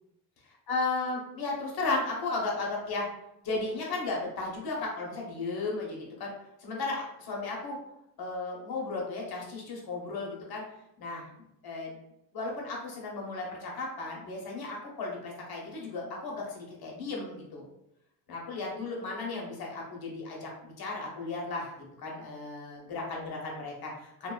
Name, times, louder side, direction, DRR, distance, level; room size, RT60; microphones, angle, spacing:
voice 1, 0.4-3.1 3.4-6.3 6.6-7.8 8.2-10.6 11.0-11.3 11.6-12.0 12.3-17.6 18.3-24.3, left 3 dB, 60° left, -1 dB, 0.9 m, -35 dB
2.5 x 2.2 x 2.3 m, 0.83 s
cardioid pair, 80°, 43 cm